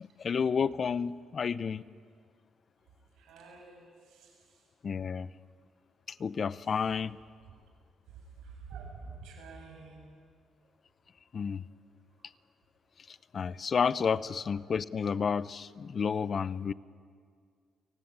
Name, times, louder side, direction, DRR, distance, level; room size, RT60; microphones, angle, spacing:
voice 1, 0.0-1.8 4.8-5.3 6.2-7.2 11.3-11.7 13.1-16.7, left 6 dB, 45° left, 18 dB, 0.7 m, -31 dB
voice 2, 3.2-4.3 8.4-10.1, right 4 dB, 85° right, 1 dB, 7.3 m, -48 dB
29.0 x 18.5 x 9.6 m, 2.1 s
cardioid pair, 90°, 0 cm